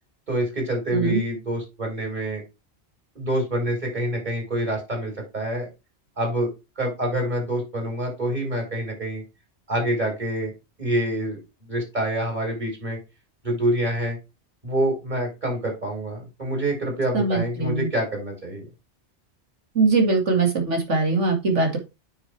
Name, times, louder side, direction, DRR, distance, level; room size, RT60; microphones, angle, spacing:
voice 1, 0.3-2.4 3.1-5.7 6.2-6.5 6.8-9.2 9.7-10.5 10.8-11.4 11.7-13.0 13.4-14.2 14.6-18.6, right 1 dB, 40° right, 1 dB, 4.6 m, -26 dB
voice 2, 17.1-17.9 19.7-21.8, right 3 dB, 85° right, 3 dB, 2.5 m, -21 dB
9.1 x 6.3 x 3.4 m, 0.25 s
omnidirectional pair, 1.2 m